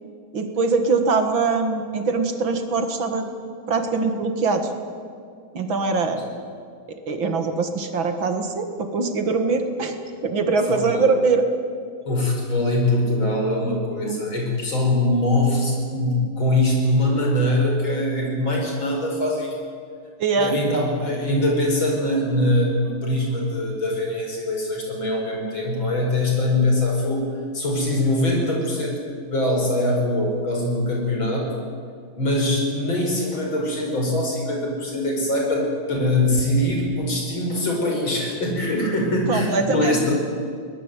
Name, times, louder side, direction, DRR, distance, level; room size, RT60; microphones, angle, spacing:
voice 1, 0.3-3.3 3.7-4.7 5.5-6.2 6.9-9.9 10.2-11.4 13.3-13.4 20.2-20.6 39.3-40.0, right 4 dB, 65° right, 7 dB, 2.6 m, -22 dB
voice 2, 10.7-11.1 12.1-19.6 20.4-31.5 32.2-40.1, left 1 dB, 60° left, 0 dB, 6.1 m, -22 dB
23.0 x 19.5 x 9.2 m, 2.3 s
omnidirectional pair, 2.4 m